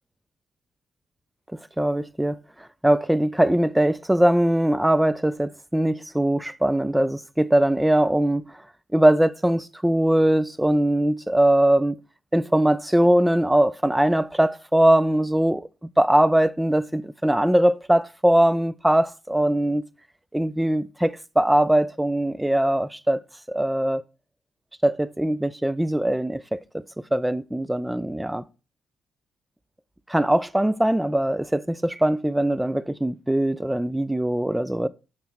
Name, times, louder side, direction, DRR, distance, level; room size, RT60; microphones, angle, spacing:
voice 1, 1.5-2.4 2.8-8.4 8.9-12.0 12.3-15.7 16.0-19.8 20.3-23.2 23.5-24.0 24.8-28.5 30.1-34.9, right 1 dB, 5° right, 0.4 m, -21 dB
6.9 x 3.2 x 6.0 m
cardioid pair, 90°, 0 cm